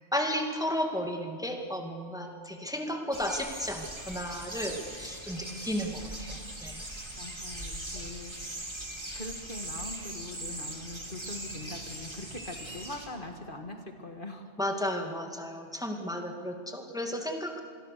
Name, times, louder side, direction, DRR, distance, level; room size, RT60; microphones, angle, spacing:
voice 1, 0.0-6.8 14.6-17.6, equal, 5° right, 3 dB, 2.0 m, -33 dB
sound 1, 3.1-13.1, right 1 dB, 25° right, 2.5 m, -40 dB
voice 2, 7.2-8.9 9.1-14.6, left 2 dB, 45° left, 4 dB, 1.9 m, -42 dB
27.0 x 22.0 x 6.7 m, 2.2 s
omnidirectional pair, 1.2 m